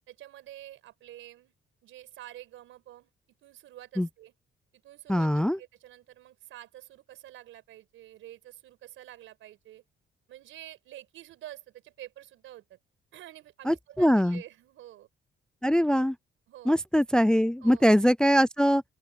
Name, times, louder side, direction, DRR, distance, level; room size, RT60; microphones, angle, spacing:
voice 1, 0.1-1.5 1.8-3.1 3.4-4.3 4.7-9.8 10.3-12.8 13.1-15.1 16.5-16.8 17.6-17.9, right 14 dB, 85° right, 5.4 m, -48 dB
voice 2, 5.1-5.6 13.7-14.4 15.6-16.1 16.7-18.8, equal, 5° left, 0.3 m, -22 dB
open air
cardioid pair, 90°, 20 cm